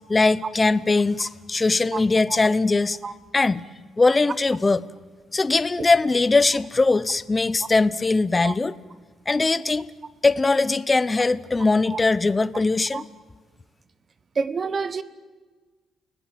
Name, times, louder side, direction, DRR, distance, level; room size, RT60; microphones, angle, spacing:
voice 1, 0.1-3.0 3.3-3.6 4.0-4.8 5.3-8.7 9.3-9.9 10.2-13.0, left 3 dB, 20° left, 0.8 m, -21 dB
voice 2, 14.3-15.0, right 5 dB, 30° right, 1.2 m, -27 dB
29.5 x 19.0 x 9.2 m
cardioid pair, 145°, 0 cm